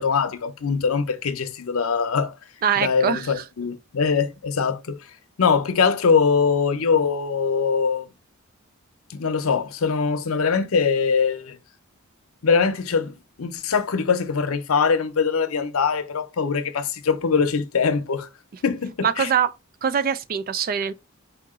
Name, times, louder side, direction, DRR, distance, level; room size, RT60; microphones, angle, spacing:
voice 1, 0.0-2.3 2.8-5.0 5.4-8.1 9.1-11.6 12.4-18.3 18.6-19.3, left 5 dB, 85° left, 0.6 m, -22 dB
voice 2, 2.6-3.4 19.0-19.5 19.8-20.9, right 8 dB, 45° right, 0.3 m, -23 dB
4.7 x 2.8 x 3.6 m
head